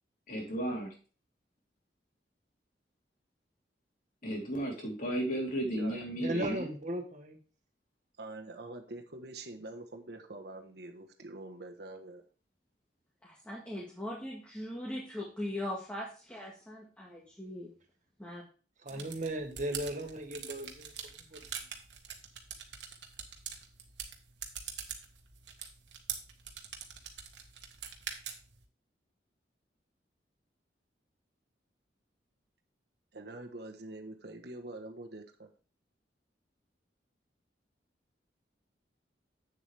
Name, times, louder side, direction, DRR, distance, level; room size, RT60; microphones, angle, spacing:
voice 1, 0.3-0.9 4.2-6.7, right 1 dB, 50° left, -1 dB, 3.6 m, -34 dB
voice 2, 6.2-7.4 18.8-21.4, right 1 dB, 45° right, 4 dB, 1.7 m, -37 dB
voice 3, 8.2-12.2 33.1-35.5, right 2 dB, 65° right, 4 dB, 1.3 m, -45 dB
voice 4, 13.2-17.7 18.2-18.4 18.9-19.1, left 1 dB, 5° left, -5 dB, 1.7 m, -40 dB
sound 1, 18.9-28.6, right 8 dB, 80° right, 1.5 m, -44 dB
8.4 x 7.3 x 3.4 m, 0.36 s
head